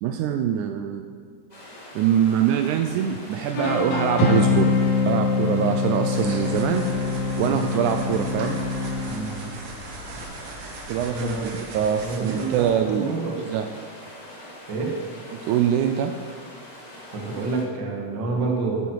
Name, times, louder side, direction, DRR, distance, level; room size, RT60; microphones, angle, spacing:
voice 1, 0.0-1.1 2.0-4.8 5.1-6.9 7.4-8.6 10.9-13.7 15.4-16.1, right 9 dB, 80° right, 6 dB, 1.9 m, -24 dB
sound 1, 1.5-17.6, left 1 dB, 15° left, 1.7 m, -43 dB
sound 2, 3.6-9.5, left 5 dB, 70° left, 2.4 m, -24 dB
sound 3, 6.1-12.7, right 2 dB, 60° right, 2.2 m, -38 dB
voice 2, 9.1-9.6 11.0-11.5 12.0-13.4 14.7-14.9 17.1-18.9, right 3 dB, 45° right, -1 dB, 1.8 m, -28 dB
12.5 x 8.5 x 4.6 m, 2.1 s
omnidirectional pair, 3.7 m